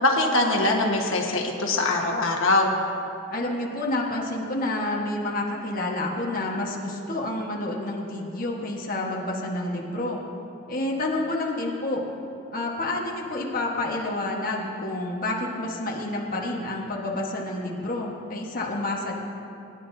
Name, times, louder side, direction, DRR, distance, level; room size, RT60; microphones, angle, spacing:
voice 1, 0.0-2.7, left 2 dB, 85° left, 1 dB, 1.3 m, -22 dB
voice 2, 3.3-10.2 10.7-12.0 12.5-19.1, left 2 dB, 45° left, -2 dB, 1.3 m, -29 dB
20.0 x 10.0 x 2.7 m, 2.8 s
head